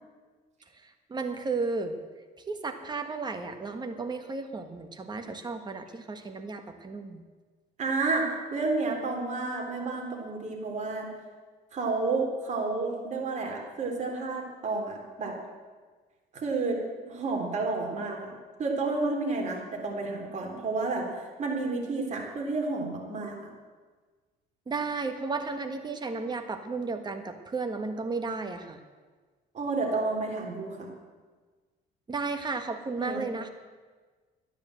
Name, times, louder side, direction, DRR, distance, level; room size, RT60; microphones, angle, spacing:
voice 1, 0.8-1.9 2.5-7.2 24.7-28.8 32.1-33.5, right 4 dB, 25° right, 6 dB, 1.5 m, -33 dB
voice 2, 7.8-11.1 11.7-15.4 16.3-23.4 29.5-30.9 33.0-33.2, right 3 dB, 45° right, 1 dB, 3.6 m, -31 dB
13.0 x 10.5 x 7.8 m, 1.4 s
cardioid pair, 110°, 17 cm